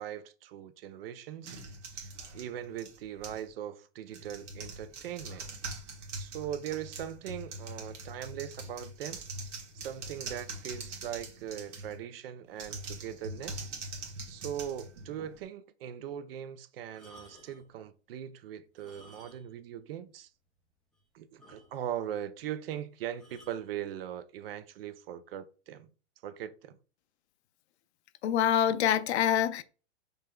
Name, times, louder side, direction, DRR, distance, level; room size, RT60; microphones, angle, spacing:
voice 1, 0.0-1.6 1.9-5.5 6.2-9.2 9.7-13.7 14.3-20.3 21.1-25.9 26.2-26.8, right 10 dB, 55° right, 0.5 m, -40 dB
sound 1, 1.4-3.5 4.1-12.0 12.5-15.4, right 2 dB, 85° right, 1.4 m, -43 dB
sound 2, 16.9-17.7 18.7-19.7 19.9-20.0 20.6-20.7 20.9-21.0 21.4-22.0 23.2-23.7 24.5-24.7, equal, ahead, 0.3 m, -56 dB
voice 2, 28.2-29.6, left 10 dB, 70° left, 0.5 m, -25 dB
5.4 x 3.4 x 2.2 m
hypercardioid pair, 145°, 35 cm